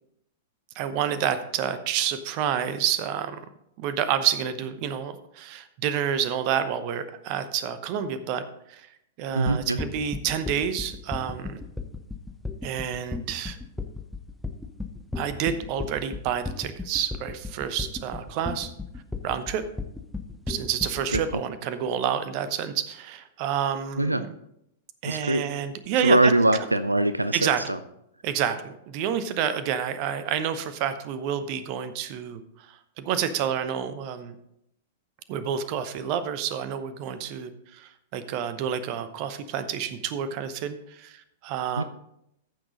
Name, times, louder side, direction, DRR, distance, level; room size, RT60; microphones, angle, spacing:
voice 1, 0.7-3.4 3.8-8.4 8.7-8.9 9.2-11.6 12.6-13.6 15.1-18.7 19.2-19.6 20.5-24.3 25.0-26.3 27.3-27.7 28.2-34.4 35.3-41.8, right 9 dB, 40° right, 12 dB, 0.8 m, -29 dB
voice 2, 9.3-9.8 21.1-21.4 24.0-24.2 25.0-25.4 26.0-27.8 41.7-41.8, right 2 dB, 85° right, 12 dB, 0.4 m, -22 dB
sound 1, 9.5-21.4, left 3 dB, 5° left, 0.9 m, -34 dB
14.5 x 6.3 x 3.8 m, 0.79 s
figure-of-eight pair, 100°, 0 cm